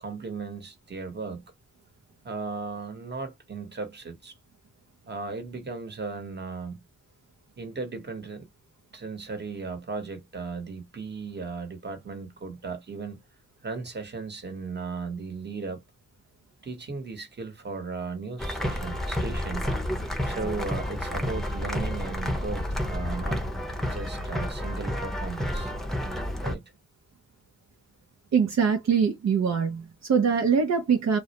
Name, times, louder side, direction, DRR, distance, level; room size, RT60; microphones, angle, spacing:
voice 1, 0.0-1.5 2.2-4.4 5.1-6.8 7.6-8.5 8.9-13.2 13.6-15.8 16.6-19.7 20.2-23.4 23.8-25.7 26.4-26.6, right 4 dB, 35° right, 1.1 m, -36 dB
sound 1, 18.4-26.5, left 1 dB, ahead, 0.7 m, -30 dB
voice 2, 28.3-31.2, right 6 dB, 60° right, 0.6 m, -23 dB
2.3 x 2.1 x 2.9 m
cardioid pair, 70°, 30 cm